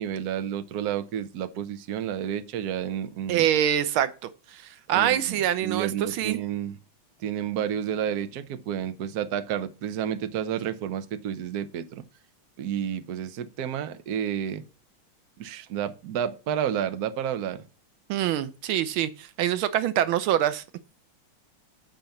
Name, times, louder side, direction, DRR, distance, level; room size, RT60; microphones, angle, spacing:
voice 1, 0.0-3.5 4.9-6.8 7.2-12.0 12.6-14.6 15.4-17.6, right 9 dB, 60° right, 1.2 m, -30 dB
voice 2, 3.3-6.4 18.1-20.6, right 11 dB, 90° right, 1.6 m, -25 dB
7.9 x 5.1 x 7.1 m
omnidirectional pair, 2.2 m